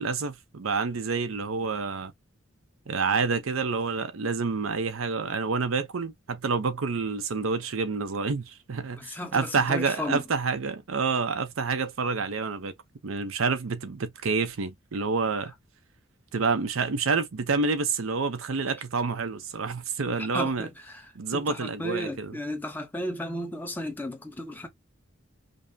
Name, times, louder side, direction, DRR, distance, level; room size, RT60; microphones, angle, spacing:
voice 1, 0.0-2.1 2.9-12.7 13.0-15.5 16.3-20.7 21.2-22.3, right 4 dB, 90° right, 0.6 m, -28 dB
voice 2, 9.0-10.2 20.2-24.7, left 1 dB, 10° left, 0.8 m, -34 dB
5.2 x 2.1 x 2.7 m
head